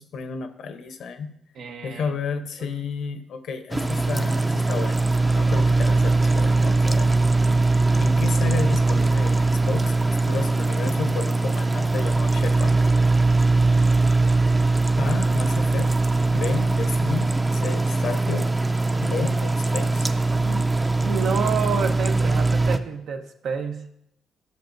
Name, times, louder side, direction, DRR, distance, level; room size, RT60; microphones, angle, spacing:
voice 1, 0.0-1.4 1.8-5.0 5.3-7.2 8.0-10.0 10.3-12.8 15.0-16.0 16.3-18.6 19.0-20.1, left 5 dB, 70° left, 9 dB, 0.8 m, -32 dB
voice 2, 1.6-2.1 2.6-2.7 20.3-20.7 21.0-23.9, right 6 dB, 70° right, 5 dB, 0.8 m, -29 dB
sound 1, 3.7-22.8, right 3 dB, 15° right, 0.5 m, -21 dB
13.5 x 6.6 x 2.6 m, 0.79 s
cardioid pair, 90°, 0 cm